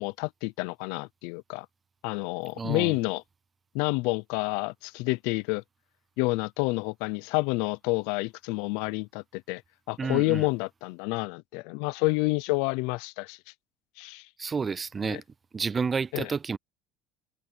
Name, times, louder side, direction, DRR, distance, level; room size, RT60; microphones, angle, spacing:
voice 1, 0.0-1.7 2.0-3.2 3.7-5.6 6.2-9.6 9.9-13.4 14.0-14.3 15.0-15.2 16.1-16.3, left 25 dB, 80° left, 0.5 m, -29 dB
voice 2, 2.6-3.0 10.0-10.5 14.4-15.2 15.5-16.6, right 5 dB, 20° right, 0.4 m, -30 dB
cardioid pair, 160°, 0 cm